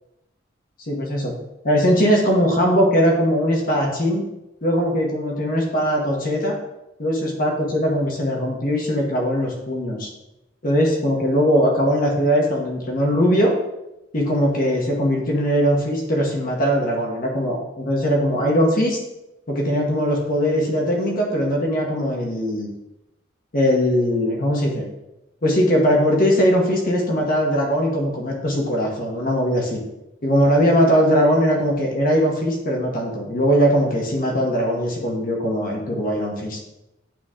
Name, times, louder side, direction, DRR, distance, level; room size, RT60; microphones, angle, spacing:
voice 1, 0.9-1.3 1.6-4.2 4.6-6.5 7.0-10.1 10.6-13.5 14.1-19.0 19.5-22.7 23.5-24.9 25.4-29.8 30.2-36.7, equal, 50° left, -1 dB, 1.1 m, -20 dB
8.8 x 3.1 x 3.7 m, 0.93 s
head